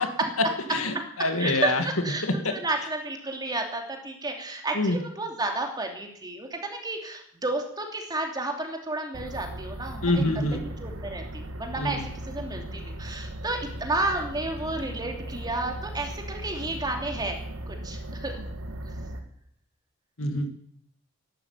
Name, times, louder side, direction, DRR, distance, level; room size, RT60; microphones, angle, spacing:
voice 1, 0.7-1.8 2.2-2.5 4.7-5.0 10.0-10.6 11.8-12.0 20.2-20.5, left 2 dB, 80° left, 7 dB, 2.2 m, -26 dB
voice 2, 1.4-17.4 17.7-18.4, right 2 dB, 20° right, 2 dB, 2.8 m, -32 dB
sound 1, 9.1-19.2, right 1 dB, 75° right, 1.9 m, -38 dB
12.5 x 11.5 x 9.0 m, 0.69 s
head